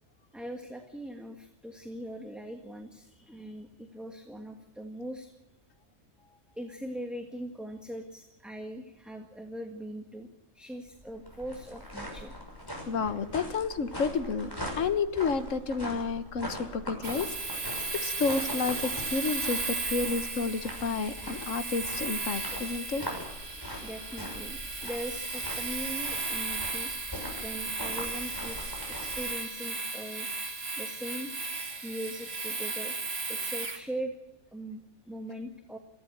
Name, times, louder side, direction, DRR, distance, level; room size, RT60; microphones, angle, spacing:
voice 1, 0.3-5.3 6.5-12.3 23.8-26.9 27.4-31.4 31.8-32.9 33.3-34.2 34.5-35.8, right 1 dB, ahead, 4 dB, 1.6 m, -41 dB
sound 1, 10.9-29.2, equal, 15° left, 6.2 m, -42 dB
voice 2, 12.9-23.0, left 4 dB, 85° left, 12 dB, 1.5 m, -31 dB
Domestic sounds home sounds, 17.0-33.8, right 3 dB, 55° right, 2.3 m, -35 dB
23.0 x 15.5 x 8.0 m, 0.97 s
omnidirectional pair, 1.3 m